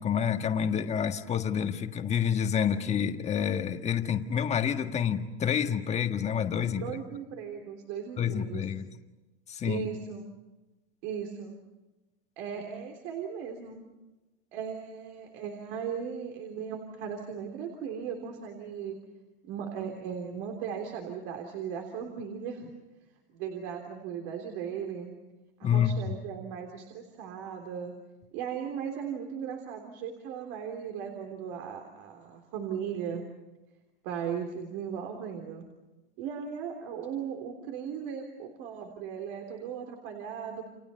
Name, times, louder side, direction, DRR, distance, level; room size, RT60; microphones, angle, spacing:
voice 1, 0.0-6.8 8.2-8.9 9.5-9.8 25.6-25.9, left 8 dB, 20° left, 6 dB, 1.6 m, -28 dB
voice 2, 6.7-8.7 9.6-10.2 11.0-11.5 12.4-13.8 14.5-19.0 19.5-22.7 23.3-25.1 25.6-27.9 28.3-33.3 34.0-35.7 36.2-40.6, right 7 dB, 55° right, 3 dB, 3.4 m, -37 dB
29.5 x 28.0 x 5.7 m, 1.1 s
supercardioid pair, 145°, 29 cm